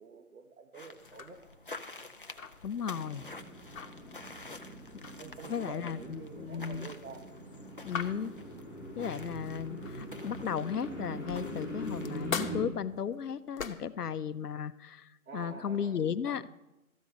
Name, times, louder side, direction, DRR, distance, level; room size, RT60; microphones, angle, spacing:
voice 1, 0.0-1.4 5.2-7.2 15.3-16.0, right 5 dB, 65° right, 6 dB, 1.3 m, -47 dB
sound 1, 0.7-12.3, left 2 dB, 40° left, 0.4 m, -50 dB
sound 2, 1.0-10.3 10.8-14.0, left 6 dB, 60° left, 1.0 m, -43 dB
voice 2, 2.6-3.2 5.5-6.9 7.8-8.3 9.0-16.5, left 7 dB, 90° left, 15 dB, 0.7 m, -35 dB
sound 3, 2.9-12.7, right 1 dB, 5° right, 1.3 m, -43 dB
13.5 x 5.3 x 8.6 m, 0.98 s
hypercardioid pair, 165°, 45 cm